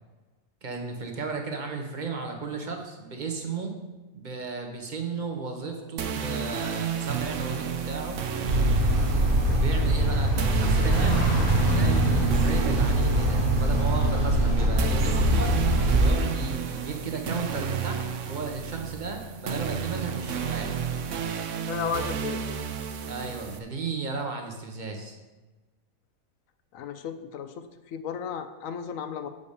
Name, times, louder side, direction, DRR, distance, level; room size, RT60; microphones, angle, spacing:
voice 1, 0.6-3.7 4.1-8.2 9.5-11.2 11.7-15.6 16.0-20.8 23.1-25.1, right 4 dB, 35° right, 3 dB, 1.1 m, -34 dB
sound 1, 6.0-23.6, right 7 dB, 65° right, 0.9 m, -32 dB
Car passing by, 7.6-17.1 17.5-17.7, left 2 dB, 40° left, 0.7 m, -42 dB
sound 2, 8.4-16.1, right 1 dB, 85° right, 1.9 m, -22 dB
voice 2, 21.7-22.6 26.7-29.3, left 7 dB, 70° left, 9 dB, 1.0 m, -34 dB
6.8 x 5.3 x 6.7 m, 1.2 s
omnidirectional pair, 1.5 m